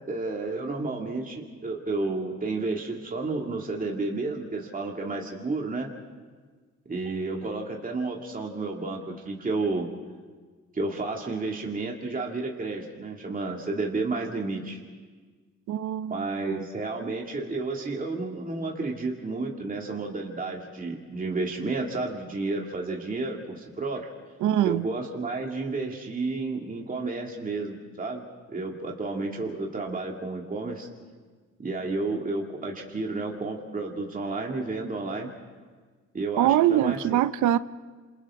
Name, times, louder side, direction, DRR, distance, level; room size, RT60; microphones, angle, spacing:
voice 1, 0.1-5.9 6.9-9.9 10.7-14.8 16.1-24.1 24.6-30.9 31.6-35.3 36.1-37.2, right 3 dB, 30° right, 2.4 m, -31 dB
voice 2, 15.7-16.6 24.4-24.9 36.4-37.6, right 12 dB, 75° right, 0.7 m, -23 dB
29.0 x 27.5 x 3.7 m
cardioid pair, 90°, 30 cm